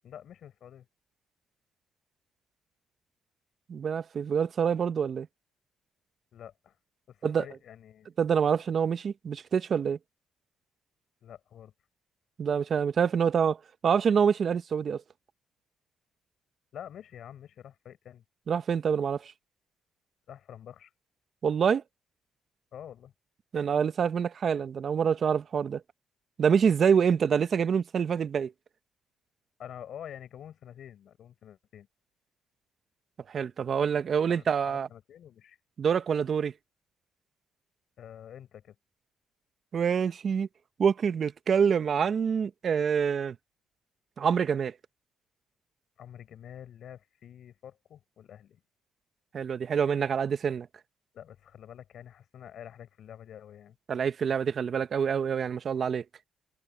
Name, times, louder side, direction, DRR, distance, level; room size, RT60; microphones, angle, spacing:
voice 1, 0.0-0.9 6.3-6.7 7.1-8.1 11.2-11.7 16.7-18.2 20.3-20.9 22.7-23.1 29.6-31.9 34.3-35.6 38.0-38.8 46.0-48.6 51.1-53.8, left 9 dB, 65° left, 6.0 m, -47 dB
voice 2, 3.7-5.3 7.2-7.4 8.2-10.0 12.4-13.6 13.8-15.0 18.5-19.3 21.4-21.8 23.5-25.8 26.4-28.5 33.3-34.9 35.8-36.5 39.7-40.5 40.8-43.4 44.2-44.7 49.3-50.7 53.9-56.0, right 7 dB, 50° right, 1.0 m, -26 dB
cardioid pair, 90°, 0 cm